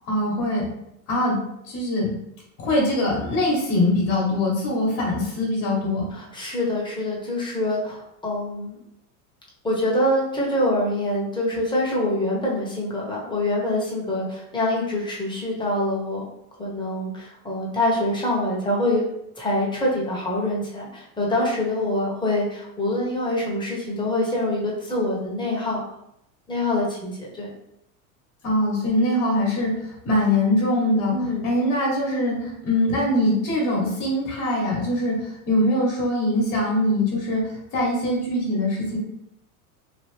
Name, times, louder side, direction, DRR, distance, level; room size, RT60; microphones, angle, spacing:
voice 1, 0.1-0.7 1.1-1.4 1.6-2.1 2.6-6.0 28.4-31.1 31.4-39.0, left 1 dB, 50° left, -3 dB, 1.3 m, -22 dB
voice 2, 6.1-8.8 9.6-16.2 16.6-19.0 19.3-25.8 26.5-27.5 31.1-31.5, left 1 dB, 10° left, -3 dB, 1.0 m, -25 dB
2.9 x 2.5 x 3.2 m, 0.77 s
supercardioid pair, 115°, 45 cm